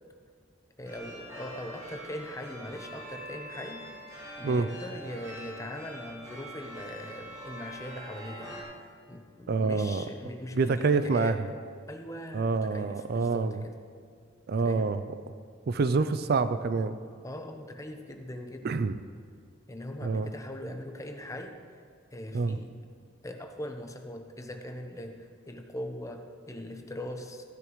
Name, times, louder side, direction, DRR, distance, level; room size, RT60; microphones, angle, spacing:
voice 1, 0.8-8.6 9.1-11.4 11.9-13.7 14.6-15.0 17.2-18.9 19.7-21.6 22.1-22.7 23.2-27.4, left 1 dB, 15° left, 5 dB, 0.8 m, -41 dB
sound 1, 0.8-8.6, equal, 20° right, 3.2 m, -44 dB
voice 2, 9.5-10.0 10.5-11.3 12.3-13.5 14.5-15.0 15.7-17.0 18.6-19.0 20.0-20.3 22.3-22.6, right 4 dB, 55° right, 12 dB, 0.4 m, -26 dB
15.0 x 10.0 x 3.1 m, 2.1 s
head